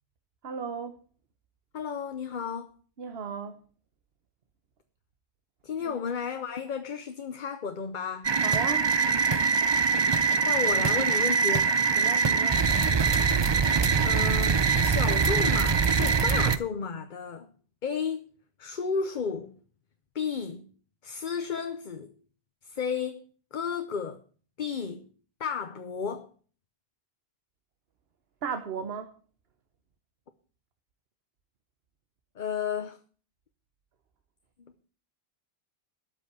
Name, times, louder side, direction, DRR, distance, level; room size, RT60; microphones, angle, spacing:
voice 1, 0.4-1.0 3.0-3.6 5.8-6.0 8.4-8.9 12.0-12.7 28.4-29.1, right 6 dB, 70° right, 1.2 m, -35 dB
voice 2, 1.7-2.7 5.6-8.3 10.4-11.8 14.0-17.5 17.8-18.3 18.6-19.6 20.1-20.7 21.0-22.1 22.6-23.2 23.5-24.2 24.6-25.1 25.4-26.3 32.4-33.0, left 6 dB, 50° left, 0.9 m, -33 dB
sound 1, 8.2-16.6, right 5 dB, 35° right, 0.5 m, -23 dB
12.5 x 6.0 x 8.2 m
omnidirectional pair, 1.1 m